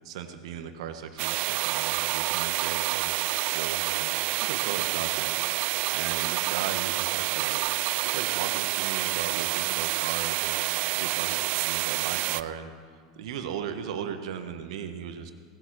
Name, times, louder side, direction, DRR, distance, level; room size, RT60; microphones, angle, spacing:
voice 1, 0.0-3.2 3.5-5.3 5.9-7.6 8.0-10.6 10.9-15.3, right 8 dB, 70° right, 8 dB, 1.3 m, -37 dB
sound 1, 1.2-12.4, right 19 dB, 50° right, 0.4 m, -28 dB
18.0 x 8.3 x 6.2 m, 2.1 s
hypercardioid pair, 110°, 3 cm